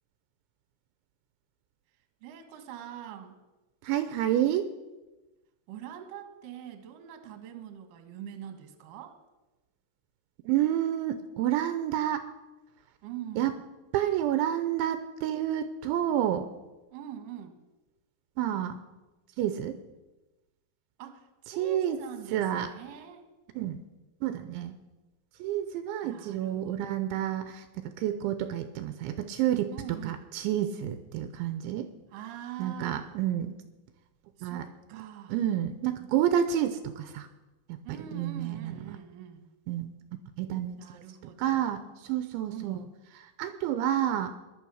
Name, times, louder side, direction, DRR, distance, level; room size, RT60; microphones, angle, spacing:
voice 1, 2.2-3.4 5.7-9.2 13.0-13.5 16.9-17.6 21.0-23.3 26.0-27.0 29.7-30.2 32.1-33.1 34.4-35.4 37.8-39.4 40.7-41.8 42.5-42.9, right 9 dB, 60° right, 7 dB, 2.6 m, -43 dB
voice 2, 3.8-4.7 10.5-12.2 13.4-13.5 13.9-16.5 18.4-18.8 19.4-19.8 21.6-22.0 22.3-22.7 23.6-23.8 24.2-24.7 25.4-29.7 30.0-31.9 32.6-33.6 34.4-34.7 35.3-37.3 37.7-37.8 38.1-38.8 39.7-39.9 40.4-42.8 43.2-44.4, right 11 dB, 80° right, 10 dB, 3.0 m, -29 dB
18.5 x 11.5 x 6.4 m, 1.1 s
omnidirectional pair, 5.6 m